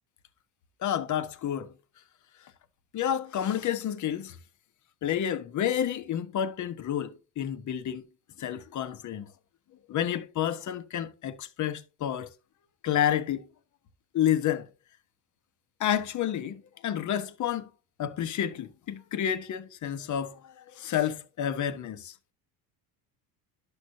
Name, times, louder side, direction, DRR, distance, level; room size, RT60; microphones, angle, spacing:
voice 1, 0.8-1.7 2.9-4.4 5.0-8.0 8.4-9.3 9.9-12.3 12.8-13.5 14.1-14.7 15.8-17.7 18.0-22.1, left 10 dB, 45° left, 1.0 m, -30 dB
11.5 x 6.3 x 2.7 m
supercardioid pair, 95°, 41 cm